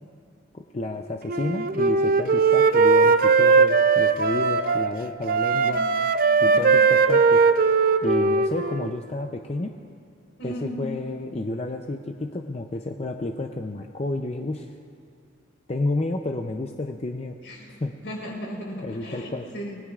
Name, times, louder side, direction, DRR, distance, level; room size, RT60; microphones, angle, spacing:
voice 1, 0.5-5.8 6.4-7.4 8.0-9.7 10.4-14.7 15.7-17.3 17.8-17.9 18.8-19.5, left 2 dB, 30° left, 4 dB, 0.5 m, -30 dB
Wind instrument woodwind instrument, 1.3-4.9 5.3-8.9, right 4 dB, 45° right, 0.5 m, -19 dB
voice 2, 5.5-5.8 6.4-6.6 10.4-10.8 17.4-19.8, equal, 70° left, -1 dB, 4.2 m, -37 dB
28.0 x 20.0 x 2.4 m, 2.3 s
head